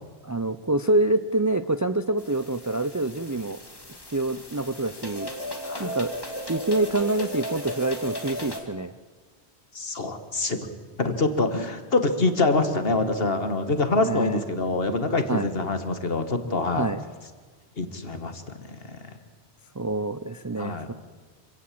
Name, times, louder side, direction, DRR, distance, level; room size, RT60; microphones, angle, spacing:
voice 1, 0.2-3.6 4.1-5.3 5.8-6.1 6.5-8.9 14.0-14.4 15.3-15.5 16.7-17.0 19.8-20.9, right 2 dB, 25° right, 11 dB, 0.4 m, -26 dB
sound 1, 2.2-8.6, equal, 20° left, 2.2 m, -36 dB
voice 2, 5.6-5.9 9.7-10.6 11.0-16.9 17.8-19.1 20.6-20.9, left 3 dB, 60° left, 8 dB, 1.9 m, -25 dB
26.0 x 17.0 x 7.7 m, 1.5 s
omnidirectional pair, 1.1 m